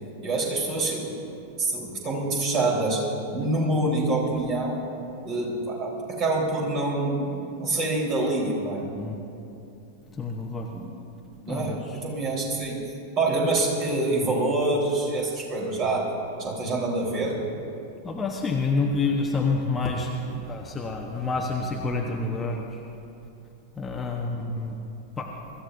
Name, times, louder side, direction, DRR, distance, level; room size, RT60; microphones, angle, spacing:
voice 1, 0.2-1.1 1.6-3.0 3.3-4.8 5.2-8.8 10.7-10.8 11.4-12.8 13.2-16.1 16.4-17.4 24.1-24.5, right 2 dB, 35° right, -2 dB, 3.7 m, -26 dB
voice 2, 10.1-10.7 11.5-12.0 18.0-22.8 23.8-24.8 25.2-25.3, left 3 dB, 15° left, 1 dB, 1.0 m, -28 dB
24.0 x 14.0 x 2.6 m, 2.8 s
figure-of-eight pair, 90°, 0 cm